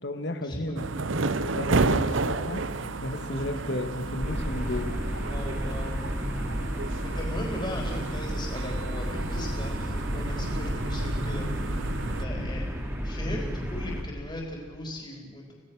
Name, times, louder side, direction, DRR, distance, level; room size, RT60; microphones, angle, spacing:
voice 1, 0.0-0.9 1.1-2.6 3.0-5.0 12.3-12.5, left 1 dB, 60° left, 7 dB, 2.0 m, -33 dB
sound 1, 0.8-12.2, right 3 dB, 75° right, 0.8 m, -31 dB
sound 2, 2.3-7.6, right 1 dB, 75° left, 6.5 m, -47 dB
sound 3, 4.2-14.0, equal, 15° right, 3.0 m, -32 dB
voice 2, 5.3-6.0 7.0-12.7 13.0-15.5, left 1 dB, 25° left, 0 dB, 4.2 m, -38 dB
27.5 x 17.5 x 6.4 m, 1.5 s
head